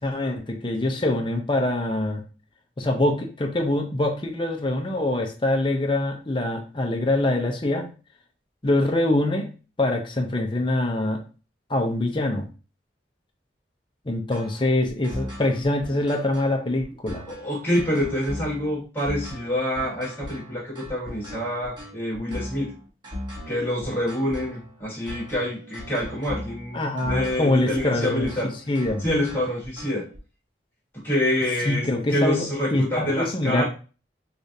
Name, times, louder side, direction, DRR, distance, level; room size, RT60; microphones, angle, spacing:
voice 1, 0.0-2.2 2.8-7.9 8.6-9.5 9.8-11.2 11.7-12.4 14.1-17.2 26.7-28.3 28.7-29.0 31.7-33.6, left 1 dB, 25° left, 3 dB, 0.6 m, -24 dB
sound 1, 14.3-30.2, equal, 25° right, 1.1 m, -38 dB
voice 2, 17.3-22.7 23.5-28.5 29.0-30.1 30.9-33.6, left 1 dB, 10° left, -6 dB, 1.2 m, -27 dB
4.9 x 2.4 x 2.7 m, 0.34 s
head